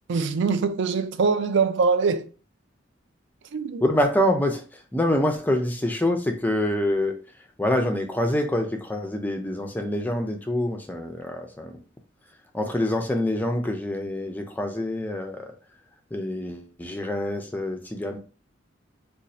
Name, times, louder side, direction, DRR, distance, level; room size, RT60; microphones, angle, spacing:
voice 1, 0.1-2.3 3.5-3.8, right 5 dB, 65° right, 0.4 m, -23 dB
voice 2, 3.8-7.2 7.6-11.8 12.5-15.5 16.1-18.2, left 1 dB, 10° left, 0.4 m, -26 dB
2.6 x 2.3 x 4.1 m
head